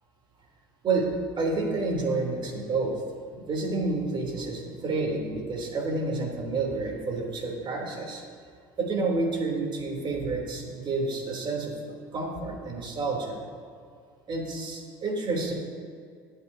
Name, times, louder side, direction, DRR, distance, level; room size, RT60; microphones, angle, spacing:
voice 1, 1.4-3.0 3.3-8.2 8.8-13.4 14.3-15.5, right 3 dB, 45° right, 0 dB, 3.6 m, -29 dB
23.0 x 8.7 x 2.9 m, 2.2 s
hypercardioid pair, 70°, 12 cm